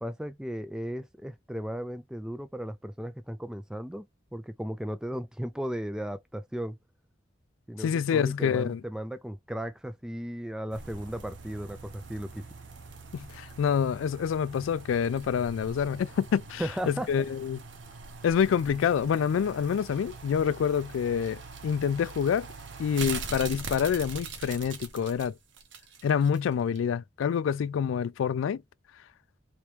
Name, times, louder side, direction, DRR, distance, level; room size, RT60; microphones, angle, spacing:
voice 1, 0.0-4.1 4.3-6.8 7.7-12.4 16.6-17.1, equal, 5° right, 0.3 m, -36 dB
voice 2, 7.8-8.8 13.1-17.6 18.2-22.5 22.8-25.3 26.0-28.6, left 7 dB, 85° left, 0.3 m, -27 dB
sound 1, 10.7-26.4 26.8-26.9, right 4 dB, 70° right, 0.9 m, -43 dB
3.0 x 2.9 x 3.2 m
head